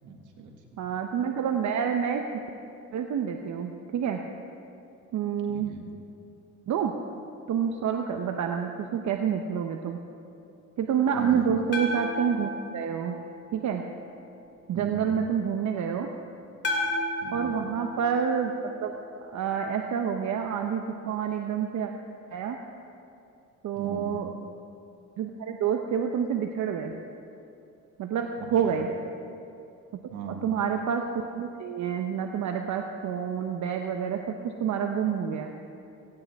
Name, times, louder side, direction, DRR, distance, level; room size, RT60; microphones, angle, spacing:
voice 1, 0.0-0.8 5.5-5.9 11.2-11.5 14.7-15.2 17.2-17.7 23.8-24.2 28.4-28.8 30.1-30.5, right 4 dB, 90° right, 2 dB, 2.0 m, -39 dB
voice 2, 0.8-2.3 2.9-4.2 5.1-5.7 6.7-6.9 7.5-10.0 10.8-13.2 13.5-13.8 14.7-16.1 17.3-18.5 18.8-19.0 19.3-21.9 22.3-22.6 23.6-24.3 25.2-26.9 28.0-28.9 30.4-35.5, right 7 dB, 70° right, 4 dB, 0.9 m, -28 dB
sound 1, 11.7-13.9 16.6-19.0, left 1 dB, 35° left, 3.3 m, -33 dB
17.5 x 16.5 x 3.6 m, 2.8 s
cardioid pair, 90°, 30 cm